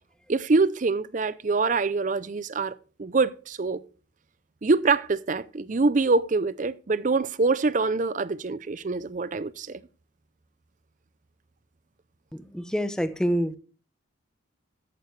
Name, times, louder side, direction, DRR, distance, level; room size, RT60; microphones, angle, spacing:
voice 1, 0.3-3.8 4.6-9.8, right 3 dB, 40° right, 0.5 m, -25 dB
voice 2, 12.3-13.6, equal, 5° left, 0.7 m, -27 dB
13.5 x 9.1 x 3.2 m
head